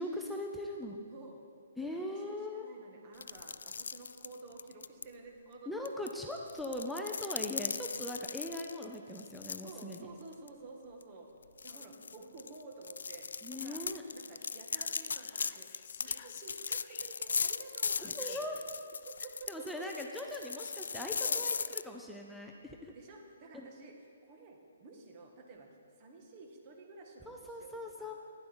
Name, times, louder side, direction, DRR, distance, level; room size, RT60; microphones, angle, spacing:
voice 1, 0.0-1.0 1.8-2.7 5.7-10.1 13.4-14.0 18.0-18.6 19.5-22.9 23.5-23.7 27.3-28.1, left 1 dB, ahead, 0 dB, 0.6 m, -40 dB
voice 2, 1.1-1.4 1.8-6.1 9.6-11.3 11.6-13.8 14.1-18.6 19.0-19.8 21.2-21.5 22.9-23.9 24.2-28.1, right 3 dB, 35° right, 2 dB, 1.7 m, -52 dB
sound 1, 3.2-5.0 5.9-10.0 10.3-10.5 11.0-11.1 11.6-21.8, left 5 dB, 75° left, 0.3 m, -38 dB
Whispering, 14.4-17.4 17.9-18.7, left 9 dB, 40° left, 0.7 m, -54 dB
11.0 x 10.5 x 4.4 m, 2.2 s
hypercardioid pair, 145°, 0 cm